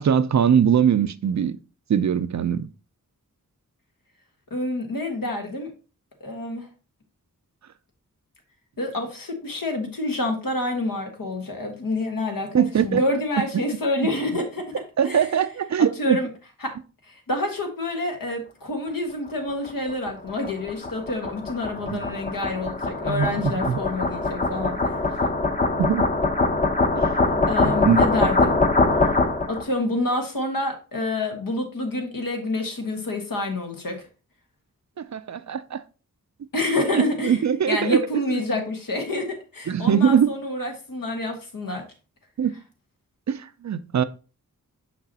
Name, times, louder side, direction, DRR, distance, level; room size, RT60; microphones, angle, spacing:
voice 1, 0.0-1.6 1.9-2.7 12.5-13.0 13.5-13.6 15.0-16.2 21.9-22.0 23.1-23.8 25.8-26.0 27.0-27.1 27.3-28.0 35.0-35.8 36.9-38.0 38.3-38.4 39.7-40.3 42.4-42.6 43.3-44.0, right 8 dB, 55° right, 0.5 m, -22 dB
voice 2, 4.5-5.7 6.2-6.7 8.8-14.7 15.0-15.3 15.8-16.3 16.6-16.7 17.1-25.0 27.5-28.6 29.5-34.0 36.5-37.4 37.7-41.8, left 2 dB, 75° left, 1.6 m, -28 dB
sound 1, 19.7-29.6, left 3 dB, 25° left, 0.8 m, -23 dB
6.0 x 5.9 x 2.8 m
wide cardioid pair, 70°, 34 cm